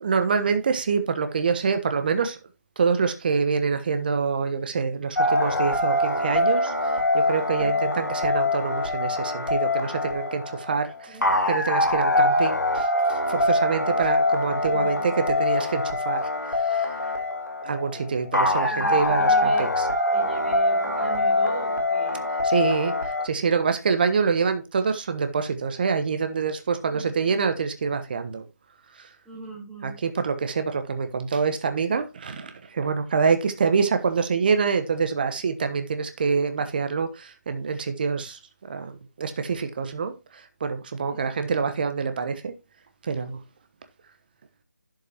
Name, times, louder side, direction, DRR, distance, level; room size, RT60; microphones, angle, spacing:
voice 1, 0.0-2.4 2.8-11.2 11.5-12.9 13.3-16.2 16.6-16.9 17.6-19.8 22.4-28.4 29.0-29.1 29.8-38.4 38.7-42.5 43.0-43.4, right 5 dB, 30° right, 1.2 m, -26 dB
sound 1, 5.2-23.3, left 2 dB, 85° left, 3.6 m, -24 dB
voice 2, 7.6-7.9 11.1-11.4 14.7-15.1 18.7-19.7 20.1-22.3 26.9-27.1 29.2-30.0 41.1-41.3, right 2 dB, ahead, 4.9 m, -39 dB
11.5 x 8.3 x 2.9 m
figure-of-eight pair, 160°, 9 cm